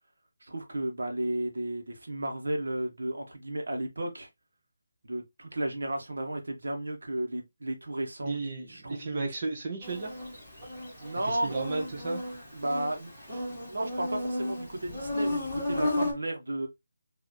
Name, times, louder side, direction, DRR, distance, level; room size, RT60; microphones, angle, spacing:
voice 1, 0.4-4.3 5.0-9.3 11.0-11.6 12.5-13.4 13.7-16.7, right 1 dB, 85° right, 1.2 m, -34 dB
voice 2, 8.2-10.1 11.2-12.2, right 3 dB, 25° right, 0.9 m, -33 dB
Insect, 9.8-16.1, left 1 dB, ahead, 1.7 m, -34 dB
4.5 x 2.7 x 3.0 m
hypercardioid pair, 175°, 0 cm